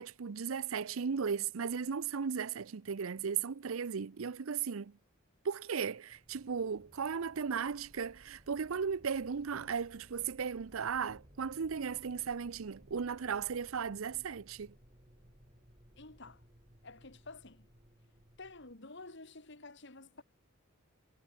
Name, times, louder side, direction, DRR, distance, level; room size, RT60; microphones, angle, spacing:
voice 1, 0.0-4.9 5.4-14.7, right 6 dB, 85° right, 0.6 m, -36 dB
sound 1, 6.1-18.7, equal, 30° right, 3.9 m, -61 dB
voice 2, 16.0-16.4 16.8-17.7 18.4-20.2, left 3 dB, 60° left, 2.9 m, -50 dB
head